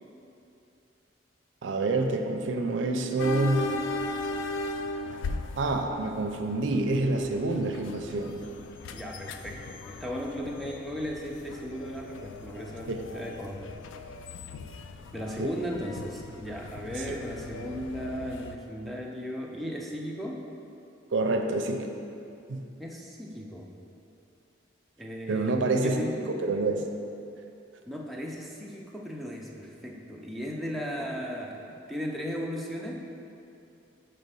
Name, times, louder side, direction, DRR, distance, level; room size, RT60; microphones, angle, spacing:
voice 1, 1.6-3.8 5.6-8.5 12.9-13.1 15.4-15.5 17.1-17.2 21.1-21.9 22.5-22.6 25.3-25.9 26.3-26.8, right 2 dB, 80° right, 4 dB, 0.4 m, -27 dB
sound 1, 3.2-18.6, left 2 dB, 80° left, 0.3 m, -38 dB
voice 2, 8.9-13.6 15.1-20.4 22.8-23.7 25.0-26.2 27.9-33.0, equal, ahead, -2 dB, 0.4 m, -36 dB
5.2 x 3.3 x 5.4 m, 2.7 s
head